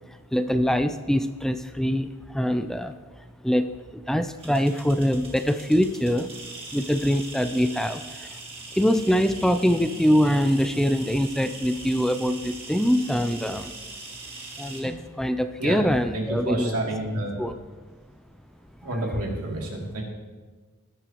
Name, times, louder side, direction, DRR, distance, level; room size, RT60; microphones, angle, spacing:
voice 1, 0.3-2.9 3.4-3.7 3.9-6.3 6.7-8.3 8.7-13.7 14.6-16.7 17.4-17.5, equal, ahead, 9 dB, 0.4 m, -23 dB
sound 1, 4.4-14.8, right 3 dB, 25° right, 2.0 m, -41 dB
voice 2, 15.6-17.4 18.8-20.0, right 1 dB, 90° right, -1 dB, 2.8 m, -29 dB
20.0 x 10.0 x 3.0 m, 1.3 s
head